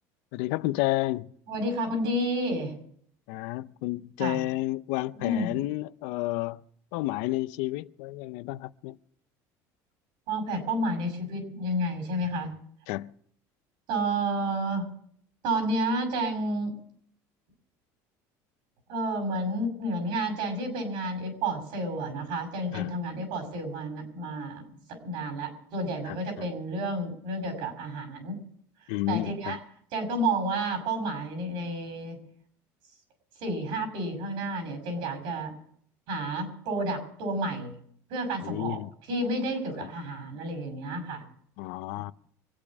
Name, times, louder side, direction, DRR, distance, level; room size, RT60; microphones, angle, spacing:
voice 1, 0.3-1.3 3.3-6.6 6.9-9.0 12.9-13.1 22.7-22.9 26.1-26.5 28.9-29.6 38.4-38.9 39.8-39.9 41.6-42.1, left 18 dB, 80° left, 0.6 m, -31 dB
voice 2, 1.5-2.7 4.2-4.4 5.1-5.5 10.3-12.5 13.9-14.9 15.4-16.8 18.9-24.6 24.9-28.4 29.1-29.6 29.9-32.2 33.4-35.5 36.1-37.7 38.1-38.8 39.1-41.2, right 1 dB, 70° right, 6.0 m, -30 dB
25.0 x 8.7 x 6.1 m
supercardioid pair, 115°, 8 cm